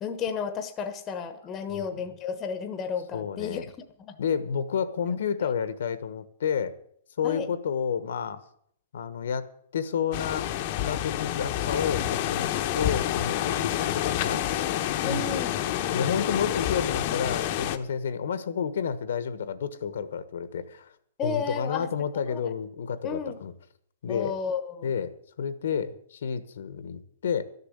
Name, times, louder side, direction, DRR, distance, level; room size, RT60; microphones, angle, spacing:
voice 1, 0.0-3.7 4.0-4.1 5.1-5.5 7.2-7.5 15.0-15.5 21.2-22.5 23.0-23.4 24.1-24.9, left 6 dB, 20° left, 9 dB, 1.1 m, -33 dB
voice 2, 1.7-2.0 3.1-3.6 4.2-6.7 7.2-8.4 8.9-10.5 10.8-14.5 15.0-15.4 15.9-20.9 21.2-23.5 24.0-24.3 24.8-25.1 25.4-27.4, left 7 dB, 75° left, 13 dB, 1.2 m, -30 dB
sound 1, 10.1-17.8, left 12 dB, 40° left, 0.9 m, -28 dB
13.0 x 7.0 x 9.7 m, 0.66 s
hypercardioid pair, 165°, 0 cm